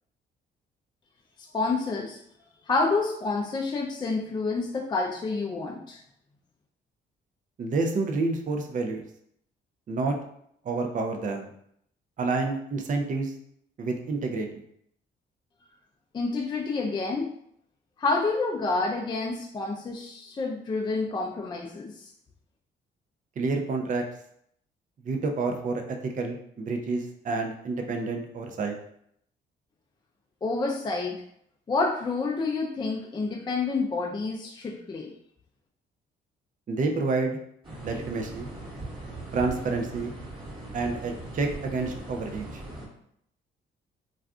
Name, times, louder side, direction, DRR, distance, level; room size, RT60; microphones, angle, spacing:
voice 1, 1.5-2.2 2.7-6.0 16.1-17.3 18.0-22.1 30.4-31.2 31.7-35.1, left 3 dB, 20° left, 0 dB, 0.4 m, -28 dB
voice 2, 7.6-9.0 9.9-10.2 10.6-11.5 12.2-13.3 13.8-14.6 23.4-24.0 25.0-28.7 36.7-37.4 37.8-38.5 39.3-40.1 40.7-42.4, right 3 dB, 40° right, 4 dB, 0.5 m, -29 dB
sound 1, 37.6-42.9, right 2 dB, 25° right, 1.2 m, -40 dB
2.4 x 2.3 x 3.5 m, 0.71 s
cardioid pair, 90°, 20 cm